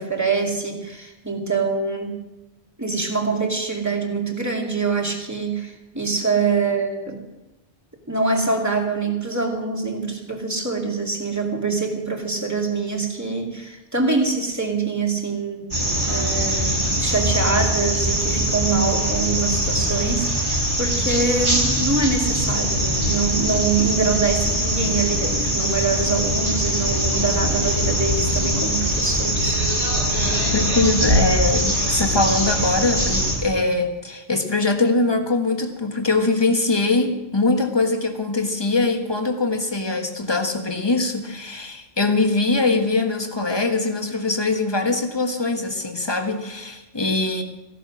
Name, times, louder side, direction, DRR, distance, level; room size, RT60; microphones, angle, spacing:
voice 1, 0.0-2.2 2.8-7.2 8.1-15.7 16.1-29.8, right 4 dB, 15° right, 0 dB, 2.5 m, -24 dB
sound 1, 15.7-33.4, equal, 50° right, 4.8 m, -22 dB
voice 2, 30.5-47.4, left 3 dB, 25° left, 4 dB, 1.6 m, -22 dB
16.0 x 11.5 x 6.2 m, 1.0 s
omnidirectional pair, 1.1 m